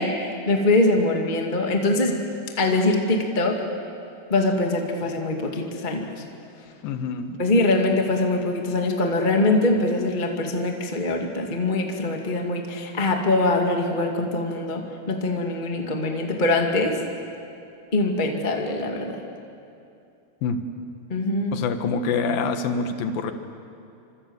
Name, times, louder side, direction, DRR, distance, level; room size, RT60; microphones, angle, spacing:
voice 1, 0.0-2.1 2.6-3.6 4.3-6.2 7.4-17.0 17.9-19.2 21.1-21.6, left 2 dB, 25° left, 2 dB, 1.0 m, -23 dB
voice 2, 6.8-7.4 20.4-20.6 21.5-23.3, left 4 dB, 65° left, 7 dB, 2.9 m, -26 dB
28.0 x 26.0 x 8.1 m, 2.6 s
omnidirectional pair, 5.1 m